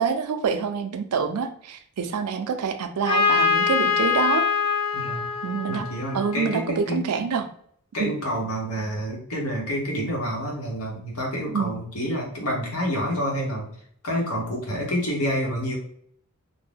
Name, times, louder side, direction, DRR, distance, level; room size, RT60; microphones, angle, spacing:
voice 1, 0.0-4.5 5.4-5.9 6.1-7.5 8.0-8.1 11.5-11.7, right 6 dB, 85° right, 8 dB, 0.4 m, -26 dB
Trumpet, 3.1-6.8, left 6 dB, 25° left, 0.6 m, -24 dB
voice 2, 4.9-5.3 5.7-7.0 7.9-13.7 14.0-15.8, equal, 65° left, -1 dB, 1.0 m, -28 dB
2.7 x 2.1 x 3.3 m, 0.63 s
head